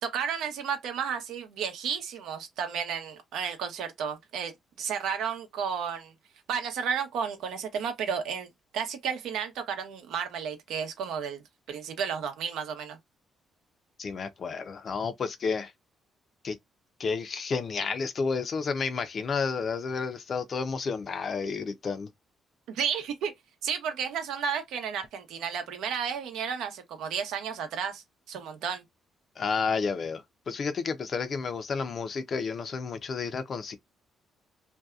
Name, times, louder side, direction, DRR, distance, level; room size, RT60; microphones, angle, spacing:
voice 1, 0.0-4.5 4.8-6.1 6.5-8.5 8.7-11.4 11.7-13.0 22.7-23.3 23.6-28.8, right 7 dB, 85° right, 0.7 m, -32 dB
voice 2, 14.0-15.7 16.4-16.6 17.0-22.1 29.4-33.8, left 5 dB, 50° left, 0.5 m, -31 dB
2.7 x 2.2 x 2.3 m
cardioid pair, 90°, 0 cm